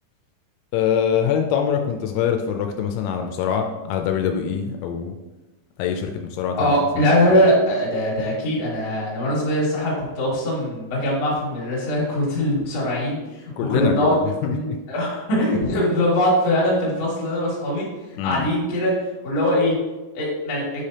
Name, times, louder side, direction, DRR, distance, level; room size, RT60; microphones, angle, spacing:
voice 1, 0.7-5.2 5.8-6.9 13.6-14.8 18.2-18.5, left 8 dB, 85° left, 4 dB, 3.1 m, -24 dB
voice 2, 6.6-14.2 14.4-17.9 18.2-18.9 19.2-19.7 20.1-20.6, left 1 dB, 50° left, -5 dB, 2.0 m, -21 dB
8.9 x 4.9 x 2.8 m, 1.1 s
omnidirectional pair, 5.9 m